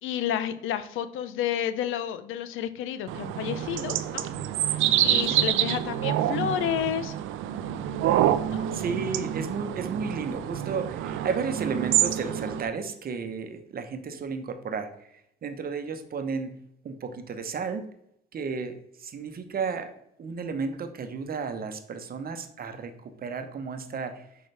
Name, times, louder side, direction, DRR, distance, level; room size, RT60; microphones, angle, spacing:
voice 1, 0.0-4.3 4.7-7.1 8.5-8.7, left 10 dB, 90° left, 12 dB, 0.6 m, -30 dB
sound 1, 3.1-12.6, right 11 dB, 90° right, 0.4 m, -27 dB
voice 2, 8.7-14.9 15.4-16.5 16.8-17.9 18.3-19.9 20.2-24.2, right 5 dB, 50° right, 9 dB, 0.9 m, -33 dB
6.4 x 4.7 x 3.3 m, 0.77 s
cardioid pair, 90°, 20 cm